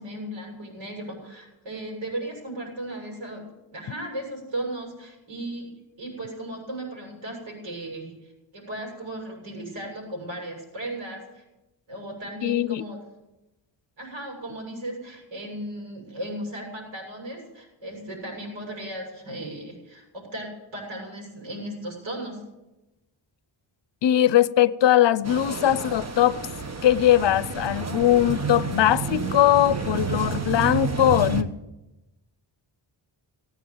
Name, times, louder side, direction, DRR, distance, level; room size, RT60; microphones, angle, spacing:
voice 1, 0.0-5.7 6.0-11.4 11.9-13.0 14.0-22.4, right 1 dB, 80° right, 7.1 m, -36 dB
voice 2, 12.4-12.9 24.0-26.4 26.8-31.5, left 12 dB, 65° left, 0.6 m, -20 dB
sound 1, 25.2-31.4, right 5 dB, 35° right, 1.2 m, -30 dB
18.0 x 9.1 x 7.9 m
wide cardioid pair, 105°, 47 cm